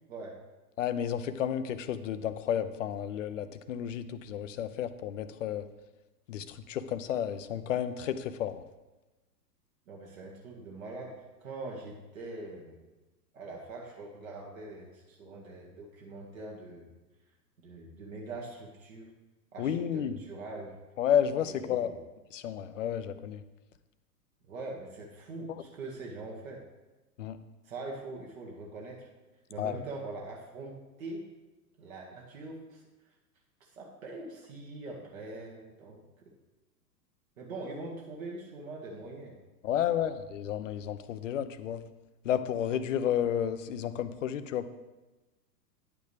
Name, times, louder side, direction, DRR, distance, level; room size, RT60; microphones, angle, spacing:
voice 1, 0.8-5.6 6.3-8.6 19.6-20.2 21.0-21.9 22.3-23.4 27.2-27.4 29.6-29.7 39.6-41.8 42.2-44.7, left 9 dB, 50° left, 11 dB, 0.7 m, -31 dB
voice 2, 9.9-12.8 13.3-16.9 17.6-19.1 19.5-20.8 21.4-22.0 24.5-26.7 27.6-29.1 29.5-31.3 31.8-32.8 33.6-36.3 37.4-39.3 39.9-40.1, right 2 dB, 50° right, -1 dB, 1.9 m, -43 dB
10.0 x 8.8 x 3.4 m, 1.1 s
figure-of-eight pair, 105°, 50 cm